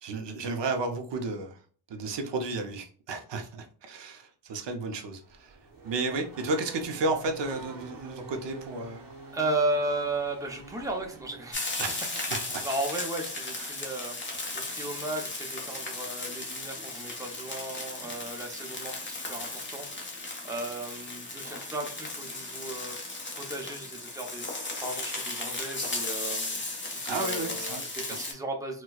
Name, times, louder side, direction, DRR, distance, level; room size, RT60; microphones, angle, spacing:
voice 1, 0.0-1.6 1.9-5.6 5.8-9.1 11.8-12.0 12.5-12.7 13.6-13.7 27.0-28.2, right 3 dB, 80° right, 0.7 m, -33 dB
Race car auto racing / Accelerating revving vroom, 5.2-11.9, right 3 dB, 55° right, 0.9 m, -46 dB
voice 2, 9.3-11.6 12.3-14.2 14.6-19.9 20.4-23.0 23.3-26.6 26.9-28.8, right 2 dB, 10° right, 0.7 m, -35 dB
sound 1, 11.5-28.3, left 2 dB, 25° left, 1.0 m, -36 dB
4.3 x 2.3 x 2.3 m
wide cardioid pair, 105°, 42 cm